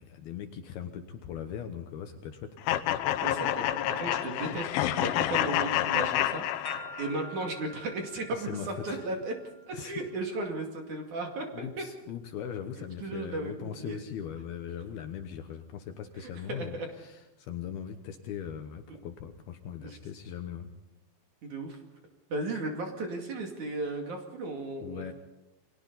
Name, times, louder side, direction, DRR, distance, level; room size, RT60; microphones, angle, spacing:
voice 1, 0.0-2.6 8.3-9.1 9.7-10.0 11.5-20.7 24.8-25.1, left 8 dB, 70° left, 7 dB, 2.6 m, -40 dB
sound 1, 2.7-7.3, left 13 dB, 85° left, 3.4 m, -28 dB
voice 2, 3.2-9.3 9.7-11.8 13.0-14.0 16.2-16.9 18.9-19.0 19.8-20.0 21.4-21.8 22.3-25.0, right 2 dB, 45° right, 3 dB, 3.2 m, -35 dB
sound 2, 6.6-10.6, right 2 dB, 70° right, 1.0 m, -49 dB
29.5 x 22.5 x 4.1 m, 0.99 s
omnidirectional pair, 5.4 m